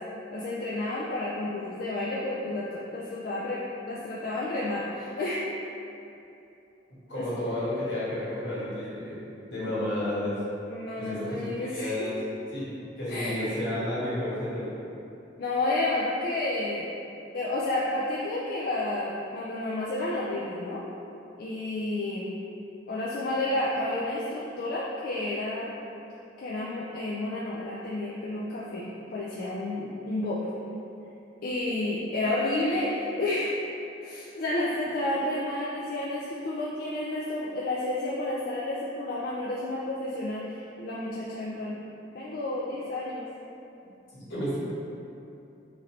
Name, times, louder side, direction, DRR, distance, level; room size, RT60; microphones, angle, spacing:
voice 1, 0.3-5.5 7.1-7.3 10.7-12.1 13.1-13.6 15.4-16.9 17.3-20.8 21.4-22.3 22.9-25.7 26.4-30.4 31.4-33.5 34.0-41.8 42.1-43.3, left 2 dB, 50° left, -6 dB, 0.3 m, -31 dB
voice 2, 7.1-9.1 9.5-10.4 11.0-12.1 12.5-12.7 13.0-14.7 44.1-44.6, left 1 dB, 75° left, -10 dB, 1.4 m, -31 dB
4.2 x 2.6 x 3.0 m, 2.8 s
head